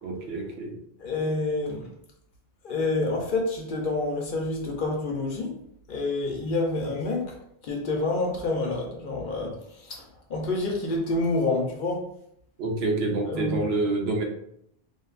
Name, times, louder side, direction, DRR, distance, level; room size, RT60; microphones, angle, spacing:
voice 1, 0.0-0.8 12.6-14.2, right 2 dB, 75° right, 1 dB, 0.8 m, -27 dB
voice 2, 1.0-1.8 2.6-5.5 5.9-7.3 7.6-10.0 10.3-12.1 13.3-13.6, left 2 dB, 60° left, 0 dB, 0.7 m, -28 dB
2.5 x 2.2 x 2.4 m, 0.72 s
omnidirectional pair, 1.1 m